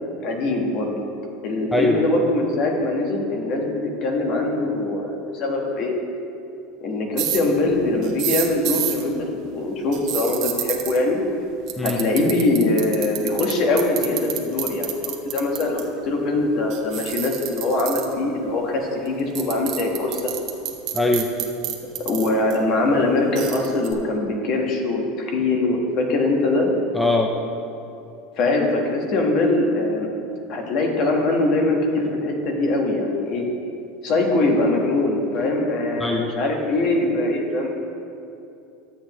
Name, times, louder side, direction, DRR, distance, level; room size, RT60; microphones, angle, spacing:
voice 1, 0.2-1.0 1.4-5.9 6.8-11.2 11.8-14.9 15.2-20.2 22.0-26.7 28.4-30.1 30.5-33.4 34.0-37.8, left 2 dB, 45° left, 1 dB, 1.3 m, -22 dB
voice 2, 1.7-2.0 11.8-12.0 20.9-21.3 26.9-27.3 36.0-36.3, left 2 dB, 5° left, 2 dB, 0.4 m, -21 dB
sound 1, 7.2-7.4 8.0-9.0 9.9-11.0 11.7-13.5 13.8-15.8 16.7-18.1 19.1-19.2 19.3-22.5 23.4-23.9, right 12 dB, 50° right, 1.0 m, -27 dB
11.5 x 7.8 x 3.0 m, 2.7 s
supercardioid pair, 145°, 0 cm